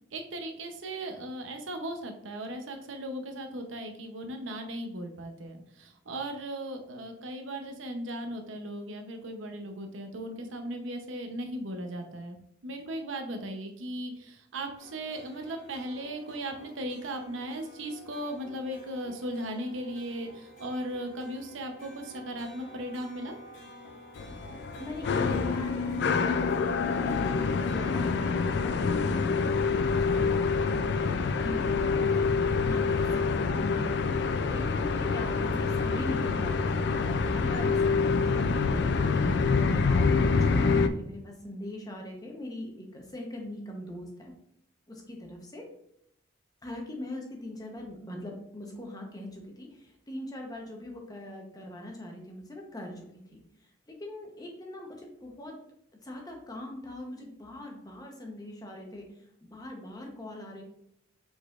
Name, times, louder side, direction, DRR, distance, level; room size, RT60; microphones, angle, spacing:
voice 1, 0.1-12.4 12.6-23.3, right 1 dB, 75° right, 5 dB, 0.7 m, -37 dB
sound 1, 14.8-28.3, left 1 dB, 80° left, 1.6 m, -50 dB
sound 2, 24.2-40.9, left 4 dB, 55° left, 0.3 m, -26 dB
voice 2, 24.8-26.6 26.9-32.2 32.6-33.9 34.5-44.3 44.9-45.7 46.6-55.6 56.0-59.1 59.5-60.6, left 1 dB, 20° left, 1 dB, 0.8 m, -41 dB
5.1 x 4.0 x 2.4 m, 0.74 s
head